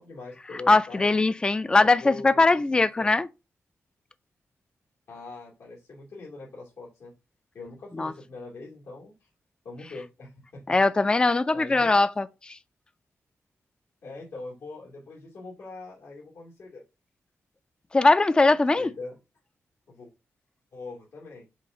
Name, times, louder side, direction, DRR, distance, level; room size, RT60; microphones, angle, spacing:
voice 1, 0.0-1.1 1.8-2.6 3.0-3.2 5.1-7.1 7.5-9.3 9.6-10.8 11.5-11.9 14.0-16.8 18.4-19.2 19.9-20.1 20.7-21.5, left 3 dB, 85° left, 2.7 m, -42 dB
voice 2, 0.7-3.3 8.0-8.1 10.7-12.6 17.9-18.9, left 3 dB, 15° left, 0.3 m, -21 dB
6.4 x 2.8 x 5.5 m
wide cardioid pair, 175°, 5 cm